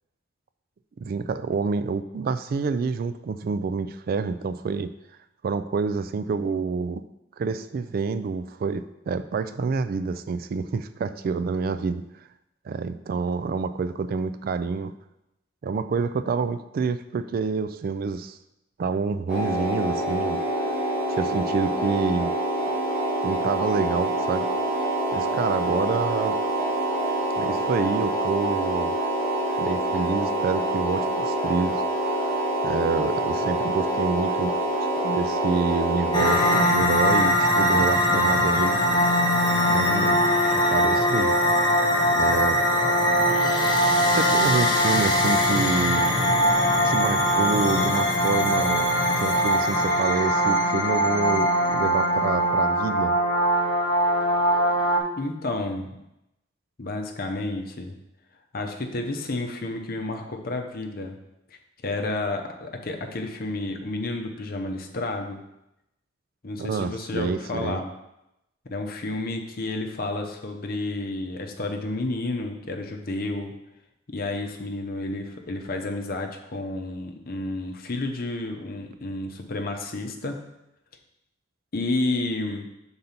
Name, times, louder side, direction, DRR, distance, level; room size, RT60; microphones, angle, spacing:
voice 1, 1.0-4.9 5.4-7.0 7.4-12.0 12.7-14.9 15.6-18.4 18.8-20.8 21.1-22.3 23.2-24.5 25.1-26.4 27.4-28.9 29.6-31.8 32.2-32.4 32.6-34.5 35.0-38.8 39.7-40.2 40.5-41.3 42.1-42.6 44.1-46.1 46.8-53.2 66.6-67.8, right 4 dB, 50° right, 12 dB, 0.3 m, -27 dB
sound 1, 19.3-36.6, right 1 dB, 5° right, 1.7 m, -26 dB
sound 2, 36.1-55.0, equal, 25° left, 0.9 m, -21 dB
voice 2, 55.2-56.0 56.8-57.9 58.5-61.2 61.8-65.4 66.4-67.9 68.7-73.5 74.1-80.4 81.7-82.7, left 2 dB, 50° left, 4 dB, 0.8 m, -31 dB
5.3 x 4.0 x 5.8 m, 0.88 s
head